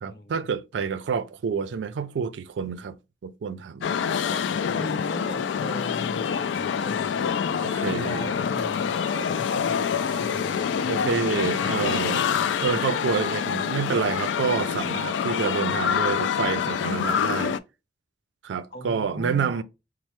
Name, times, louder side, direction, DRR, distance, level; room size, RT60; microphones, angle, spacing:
voice 1, 0.0-4.1 7.6-8.3 10.9-12.2 12.6-17.6 18.4-19.6, right 6 dB, 85° right, 0.4 m, -28 dB
sound 1, 3.8-17.6, left 7 dB, 85° left, 0.3 m, -26 dB
voice 2, 4.1-11.2 18.7-19.6, left 1 dB, 60° left, 0.7 m, -38 dB
Screaming, 8.8-9.5 9.8-10.4 10.8-12.6 13.1-13.8, right 5 dB, 5° right, 1.9 m, -49 dB
4.2 x 2.0 x 3.0 m
head